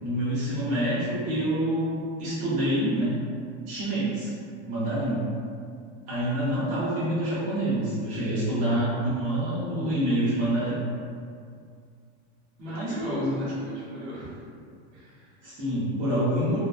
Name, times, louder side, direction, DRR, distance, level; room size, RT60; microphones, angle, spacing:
voice 1, 0.0-3.2 3.7-4.3 4.7-5.3 6.1-10.8 12.6-13.4 14.0-14.1 15.4-16.6, right 1 dB, 25° right, -11 dB, 0.5 m, -27 dB
voice 2, 12.6-14.3 14.9-15.6, right 1 dB, 75° right, -7 dB, 1.1 m, -39 dB
2.8 x 2.1 x 2.2 m, 2.2 s
supercardioid pair, 175°, 34 cm